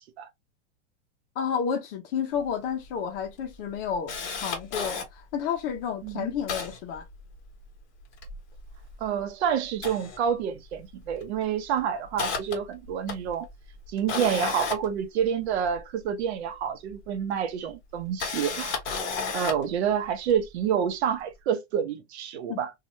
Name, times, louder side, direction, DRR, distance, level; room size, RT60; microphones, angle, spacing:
voice 1, 1.4-7.0 22.5-22.6, left 7 dB, 55° left, 0.7 m, -31 dB
Camera, 2.5-2.6 2.8-2.9 3.4-5.1 5.7-5.8 6.0-7.7 8.0-9.2 9.7-10.8 11.1-11.4 11.8-15.8 16.9-17.0 17.9-19.7 20.3-20.4, left 5 dB, 35° left, 1.2 m, -33 dB
voice 2, 9.0-13.5 13.9-19.0 19.3-22.7, right 8 dB, 70° right, 0.8 m, -28 dB
2.8 x 2.4 x 3.0 m
supercardioid pair, 150°, 34 cm